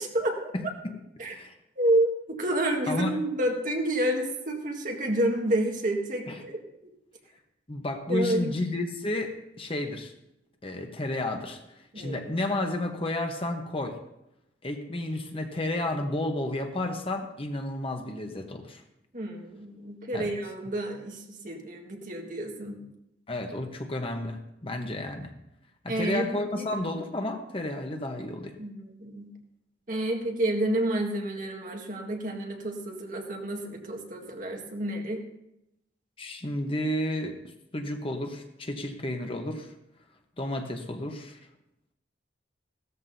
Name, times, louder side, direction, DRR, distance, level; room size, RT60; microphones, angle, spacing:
voice 1, 0.0-0.5 1.2-1.3 1.8-6.6 8.1-8.6 11.9-12.2 19.1-21.2 21.4-22.8 25.9-26.5 28.6-29.3 29.9-35.2, right 1 dB, 45° right, 2 dB, 1.7 m, -29 dB
voice 2, 0.5-1.5 2.9-3.2 6.3-6.4 7.7-10.1 10.6-11.6 12.0-14.0 14.6-18.8 20.1-20.3 23.3-25.3 25.8-28.5 36.2-37.4 37.7-39.7 40.4-41.4, left 1 dB, 30° left, 4 dB, 1.0 m, -32 dB
16.0 x 13.5 x 2.8 m, 0.86 s
head